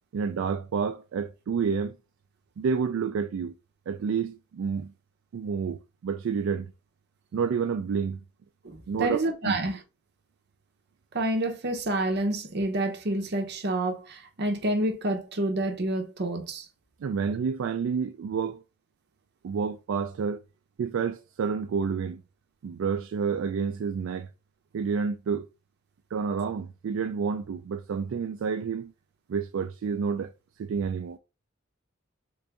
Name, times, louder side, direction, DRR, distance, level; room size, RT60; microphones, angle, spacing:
voice 1, 0.1-2.0 2.6-3.5 3.9-4.9 5.3-6.7 7.3-8.2 8.9-9.6 17.0-18.6 19.4-20.4 20.8-22.2 22.6-24.3 24.7-25.5 26.1-28.9 29.3-30.3 30.6-31.2, right 6 dB, 75° right, 0.3 m, -29 dB
voice 2, 8.6-9.8 11.1-16.7, right 1 dB, 55° right, 0.8 m, -28 dB
3.8 x 2.6 x 3.4 m
head